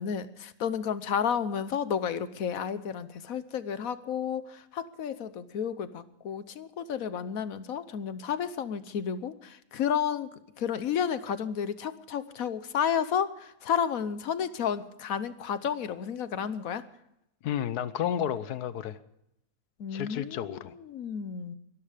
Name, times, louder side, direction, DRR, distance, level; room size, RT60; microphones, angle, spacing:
voice 1, 0.0-10.3 10.6-16.8 19.8-21.6, left 8 dB, 65° left, 14 dB, 1.3 m, -31 dB
voice 2, 17.4-19.0 19.9-20.7, left 10 dB, 85° left, 15 dB, 1.4 m, -31 dB
22.5 x 12.0 x 5.0 m, 0.82 s
omnidirectional pair, 1.7 m